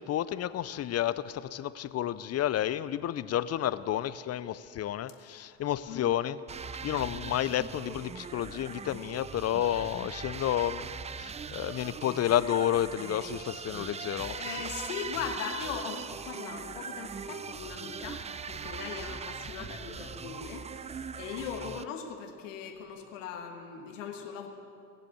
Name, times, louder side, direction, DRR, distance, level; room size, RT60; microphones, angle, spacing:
voice 1, 0.0-6.4 6.8-14.4, left 11 dB, 40° left, 16 dB, 0.6 m, -31 dB
voice 2, 5.2-5.5 5.9-6.1 9.7-9.9 14.0-24.5, left 7 dB, 85° left, 3 dB, 1.4 m, -40 dB
sound 1, 6.5-21.8, right 6 dB, 20° right, 0.4 m, -40 dB
18.5 x 7.7 x 8.3 m, 2.5 s
hypercardioid pair, 65°, 37 cm